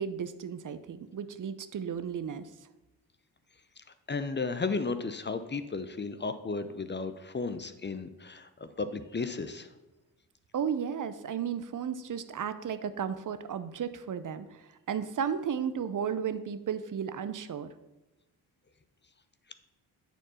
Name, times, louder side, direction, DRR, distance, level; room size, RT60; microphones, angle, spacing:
voice 1, 0.0-2.5 10.5-14.5 14.9-17.7, right 7 dB, 40° right, 12 dB, 0.8 m, -34 dB
voice 2, 4.1-9.7, left 4 dB, 25° left, 10 dB, 0.7 m, -34 dB
9.0 x 4.4 x 5.6 m, 1.0 s
hypercardioid pair, 40°, 48 cm